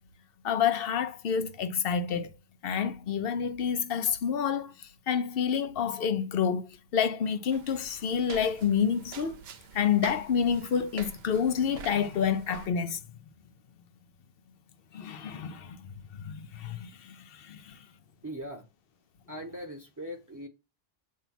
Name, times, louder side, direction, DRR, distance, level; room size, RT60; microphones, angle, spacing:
voice 1, 0.4-2.3 2.6-9.4 9.7-13.0 14.9-17.9, left 7 dB, 70° left, 0.8 m, -29 dB
sound 1, 7.5-12.7, right 7 dB, 80° right, 0.9 m, -46 dB
voice 2, 18.2-18.7 19.3-20.5, equal, 20° right, 0.8 m, -40 dB
8.0 x 2.8 x 5.8 m
omnidirectional pair, 1.0 m